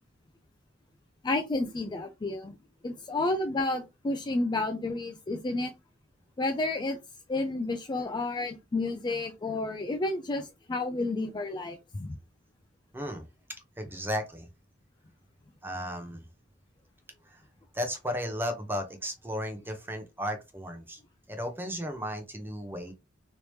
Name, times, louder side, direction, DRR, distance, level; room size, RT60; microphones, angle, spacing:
voice 1, 1.2-2.5 2.8-5.7 6.4-7.0 7.3-12.1, left 2 dB, 20° left, 0.3 m, -31 dB
voice 2, 12.9-13.3 13.8-14.5 15.6-16.2 17.3-17.4 17.7-21.0 21.3-22.9, equal, 10° right, 0.7 m, -34 dB
3.1 x 2.8 x 3.2 m
head